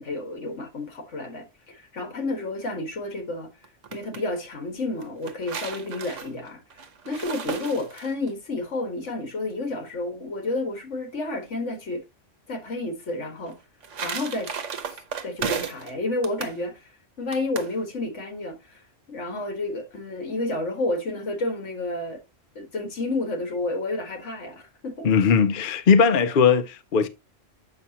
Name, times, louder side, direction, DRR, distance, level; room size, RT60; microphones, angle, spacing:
voice 1, 0.0-3.5 3.9-12.0 12.5-13.6 14.0-18.8 19.1-22.2 22.6-25.1, left 2 dB, 70° left, 1.8 m, -31 dB
sound 1, 3.6-4.2 5.0-8.3 13.5-15.9 16.2-16.6 17.3-17.7, right 6 dB, 75° right, 1.3 m, -34 dB
voice 2, 25.0-27.1, left 6 dB, 55° left, 0.7 m, -19 dB
7.7 x 5.8 x 2.8 m
omnidirectional pair, 1.3 m